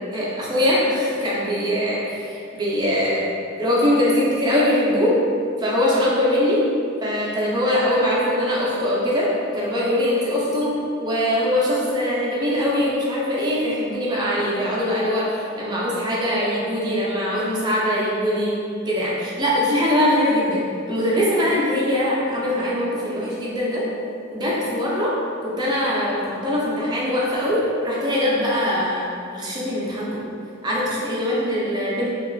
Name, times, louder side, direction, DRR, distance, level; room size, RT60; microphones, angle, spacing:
voice 1, 0.1-3.3 3.5-5.2 5.6-6.7 7.0-23.9 24.3-25.2 25.4-30.2 30.6-32.1, left 1 dB, 20° right, -6 dB, 0.5 m, -22 dB
3.3 x 2.4 x 2.3 m, 2.4 s
head